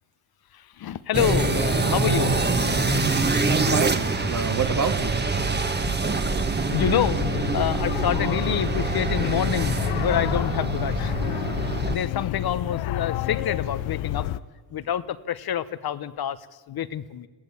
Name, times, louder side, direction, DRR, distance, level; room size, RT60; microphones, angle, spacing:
voice 1, 0.5-2.5 5.8-14.3 14.7-17.3, left 10 dB, 50° left, 13 dB, 1.0 m, -28 dB
sound 1, 1.1-12.0, right 3 dB, 20° right, 1.7 m, -25 dB
voice 2, 2.8-5.3, right 5 dB, 40° right, 7 dB, 2.1 m, -29 dB
sound 2, 6.8-14.4, left 14 dB, 80° left, 0.8 m, -29 dB
21.5 x 15.5 x 8.6 m, 1.3 s
cardioid pair, 85°, 47 cm